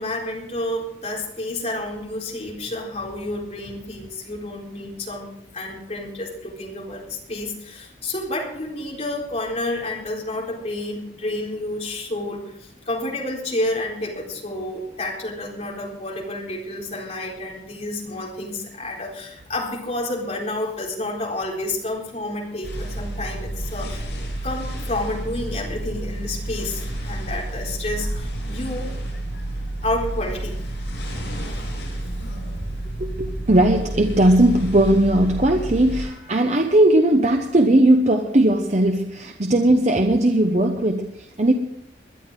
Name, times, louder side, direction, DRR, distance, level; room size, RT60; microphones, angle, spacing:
voice 1, 0.0-24.1 24.4-28.9 29.8-30.6 32.5-32.7, left 1 dB, 40° left, -2 dB, 4.1 m, -30 dB
sound 1, 22.6-36.1, right 1 dB, 80° left, 7.8 m, -30 dB
voice 2, 33.0-41.5, right 1 dB, 40° right, 4 dB, 1.0 m, -18 dB
21.5 x 11.5 x 3.8 m, 0.75 s
head